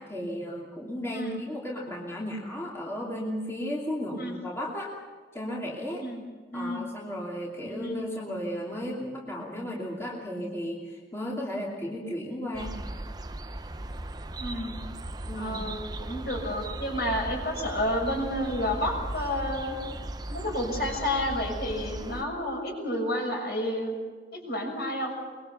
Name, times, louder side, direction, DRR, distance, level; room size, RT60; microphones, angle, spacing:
voice 1, 0.0-5.0 5.3-6.0 6.5-12.7 15.3-15.6, equal, 15° left, -4 dB, 2.8 m, -34 dB
voice 2, 6.5-6.9 7.7-8.1 14.4-14.8 15.4-19.8 20.3-23.9 24.3-25.2, left 1 dB, 60° left, 1 dB, 6.8 m, -30 dB
sound 1, 12.5-22.2, right 1 dB, 20° right, 0.7 m, -37 dB
24.0 x 22.0 x 6.9 m, 1.5 s
head